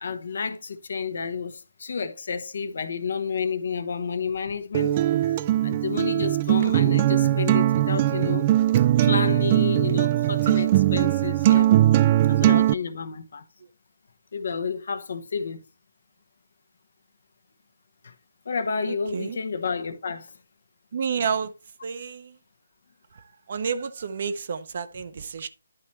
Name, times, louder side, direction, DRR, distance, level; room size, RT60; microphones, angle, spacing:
voice 1, 0.0-8.5 9.0-11.7 12.3-13.4 14.3-15.6 18.0-18.1 18.4-20.4, left 5 dB, 55° left, 1.1 m, -30 dB
Acoustic guitar, 4.7-12.7, right 13 dB, 25° right, 0.3 m, -20 dB
voice 2, 20.9-21.5 21.8-22.3 23.5-25.5, right 6 dB, 45° right, 0.7 m, -29 dB
11.0 x 4.2 x 4.2 m
figure-of-eight pair, 150°, 0 cm